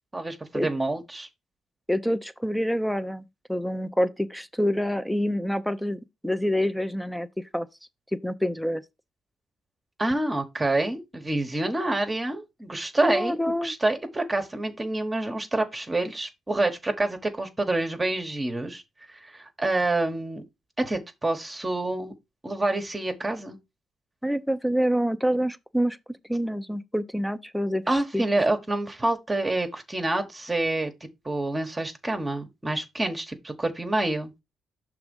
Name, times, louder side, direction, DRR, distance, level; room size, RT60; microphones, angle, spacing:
voice 1, 0.1-1.3 10.0-13.3 13.6-18.8 19.1-20.4 20.8-22.1 22.4-23.6 27.9-30.9 31.2-34.3, right 2 dB, 20° right, 1.1 m, -27 dB
voice 2, 1.9-7.3 7.5-7.7 8.1-8.8 13.0-13.7 24.2-26.0 26.3-27.8 28.1-28.2, equal, ahead, 0.6 m, -26 dB
6.0 x 3.5 x 5.2 m
cardioid pair, 90°, 0 cm